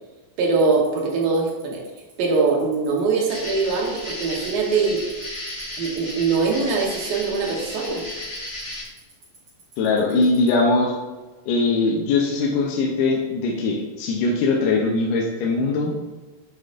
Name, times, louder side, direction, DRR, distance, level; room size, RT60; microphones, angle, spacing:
voice 1, 0.4-1.8 2.2-5.0 5.8-8.0, right 4 dB, 75° right, -1 dB, 2.8 m, -22 dB
Tick-tock, 0.6-10.5, right 6 dB, 45° right, 2.9 m, -49 dB
sound 1, 3.3-8.8, left 1 dB, 30° left, 1.0 m, -34 dB
voice 2, 9.8-10.9 11.5-16.0, left 3 dB, 75° left, -1 dB, 2.1 m, -21 dB
8.6 x 4.8 x 2.5 m, 1.2 s
omnidirectional pair, 4.2 m